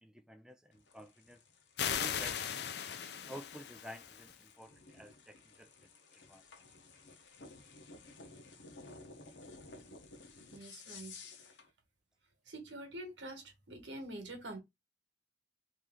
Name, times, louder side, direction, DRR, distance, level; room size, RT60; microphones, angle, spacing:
voice 1, 0.0-1.4 1.9-2.4 3.2-6.5, equal, 5° right, 0.3 m, -51 dB
sound 1, 0.7-11.7, left 3 dB, 90° left, 0.9 m, -55 dB
sound 2, 1.8-4.3, left 8 dB, 65° left, 0.5 m, -38 dB
voice 2, 10.5-11.1 12.5-14.6, right 1 dB, 90° right, 1.3 m, -46 dB
3.1 x 2.7 x 3.7 m
head